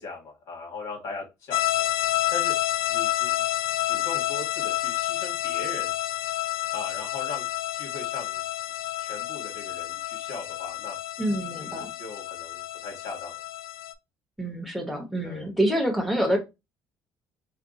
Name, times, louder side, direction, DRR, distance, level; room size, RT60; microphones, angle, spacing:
voice 1, 0.0-1.9 2.3-2.5 2.9-3.3 3.8-5.9 6.7-7.4 7.7-8.4 8.7-11.0 11.6-13.4 15.2-15.5, left 3 dB, 55° left, -1 dB, 1.8 m, -39 dB
sound 1, 1.5-13.9, left 14 dB, 85° left, 0.4 m, -29 dB
voice 2, 11.2-11.9 14.4-16.4, right 1 dB, ahead, 2 dB, 0.7 m, -26 dB
3.5 x 2.3 x 3.9 m, 0.24 s
cardioid pair, 180°, 7 cm